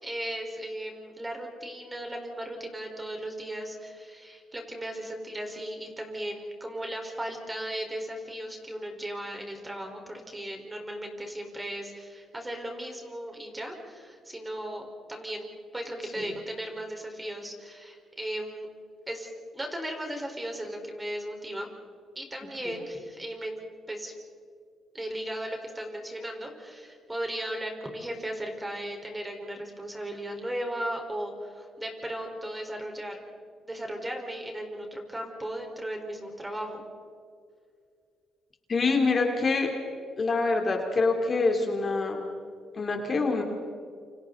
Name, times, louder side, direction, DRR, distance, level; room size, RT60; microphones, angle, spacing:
voice 1, 0.0-18.7 19.1-21.7 22.1-23.6 23.9-24.1 24.9-33.2 33.6-36.8, right 1 dB, 15° right, 2 dB, 4.4 m, -36 dB
voice 2, 38.7-39.7 40.2-42.3 42.7-43.4, left 3 dB, 40° left, 2 dB, 3.3 m, -25 dB
29.0 x 27.0 x 4.0 m, 2.3 s
cardioid pair, 90°, 0 cm